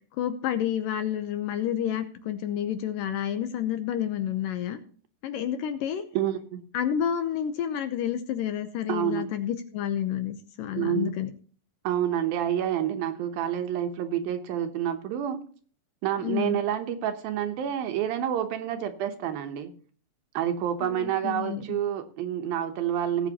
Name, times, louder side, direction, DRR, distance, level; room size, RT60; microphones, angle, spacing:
voice 1, 0.2-4.8 5.2-6.0 6.7-11.3 16.2-16.6 20.8-21.8, left 10 dB, 75° left, 9 dB, 2.2 m, -29 dB
voice 2, 6.1-6.6 8.9-9.3 10.8-11.1 11.8-15.4 16.0-19.7 20.3-23.3, right 10 dB, 75° right, 8 dB, 2.7 m, -28 dB
18.0 x 8.8 x 2.9 m, 0.43 s
omnidirectional pair, 4.5 m